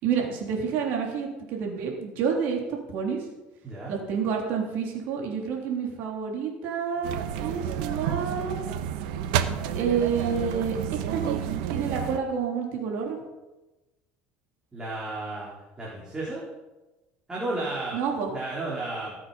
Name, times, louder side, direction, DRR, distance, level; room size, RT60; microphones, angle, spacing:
voice 1, 0.0-3.2 3.9-8.6 9.7-11.4 11.7-13.2 17.9-18.3, right 6 dB, 60° right, 0 dB, 3.2 m, -29 dB
voice 2, 3.6-3.9 14.7-15.5 15.8-16.5 17.3-18.0 18.3-19.2, right 2 dB, 15° right, -6 dB, 3.7 m, -33 dB
sound 1, 7.0-12.2, right 9 dB, 85° right, 1.1 m, -30 dB
18.5 x 7.7 x 5.6 m, 1.1 s
cardioid pair, 135°, 4 cm